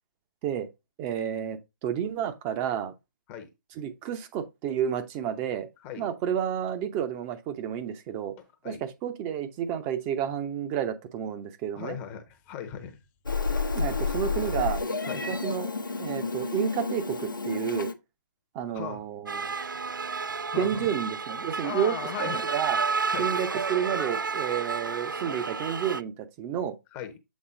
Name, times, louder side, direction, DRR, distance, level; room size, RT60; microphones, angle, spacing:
voice 1, 1.0-2.9 3.8-5.7 6.0-8.3 8.6-8.7 9.0-12.0 13.7-15.7 16.0-17.9 18.5-19.5 20.6-21.9 22.2-22.8 23.2-26.8, right 9 dB, 20° right, 0.8 m, -31 dB
voice 2, 11.7-13.0 15.0-15.4 18.7-19.0 20.5-20.9 21.6-22.4 23.1-23.3 26.9-27.2, left 9 dB, 20° left, 0.9 m, -37 dB
Meow, 13.3-17.9, left 4 dB, 80° left, 0.9 m, -30 dB
sound 1, 19.3-26.0, right 5 dB, 80° right, 0.4 m, -31 dB
7.3 x 3.9 x 3.8 m
figure-of-eight pair, 135°, 11 cm